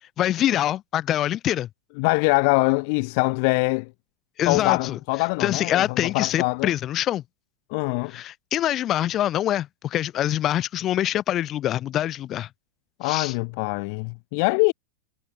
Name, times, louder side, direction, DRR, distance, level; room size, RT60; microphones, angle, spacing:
voice 1, 0.2-1.7 4.4-5.0 5.4-7.2 8.1-12.5 13.0-13.3, left 12 dB, 30° left, 2.0 m, -25 dB
voice 2, 2.0-3.9 4.4-6.7 7.7-8.2 13.0-14.7, left 34 dB, 45° left, 0.6 m, -23 dB
figure-of-eight pair, 90°, 0 cm